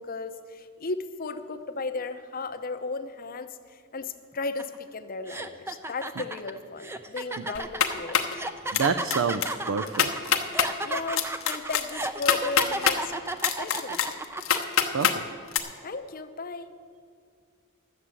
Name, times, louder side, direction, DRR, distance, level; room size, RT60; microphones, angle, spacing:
voice 1, 0.0-8.2 10.8-14.2 15.8-16.7, left 3 dB, 45° left, 9 dB, 0.7 m, -35 dB
sound 1, 4.6-4.8 5.3-14.6, right 2 dB, 10° right, 0.5 m, -33 dB
sound 2, 7.5-8.3 8.7-9.1 9.4-9.5 9.9-10.7 11.2-13.0 13.4-15.2 15.5-15.6, left 8 dB, 80° left, 0.9 m, -24 dB
voice 2, 8.7-10.1 14.9-15.2, right 5 dB, 70° right, 9 dB, 0.5 m, -27 dB
11.5 x 7.5 x 8.2 m, 2.2 s
head